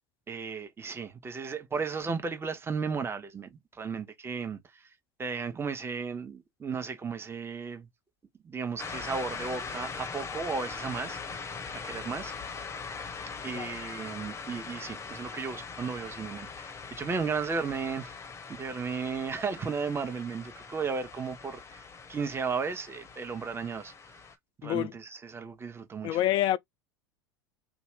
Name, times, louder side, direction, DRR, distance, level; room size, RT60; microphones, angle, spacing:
voice 1, 0.3-4.9 5.2-7.9 8.4-11.4 11.8-12.3 13.4-18.2 18.5-21.8 22.1-23.9 24.6-26.2, right 5 dB, 20° right, 0.9 m, -35 dB
sound 1, 8.8-24.3, left 5 dB, 20° left, 0.8 m, -41 dB
voice 2, 24.6-24.9 26.0-26.6, left 13 dB, 40° left, 0.4 m, -27 dB
2.6 x 2.4 x 3.3 m
figure-of-eight pair, 80°, 12 cm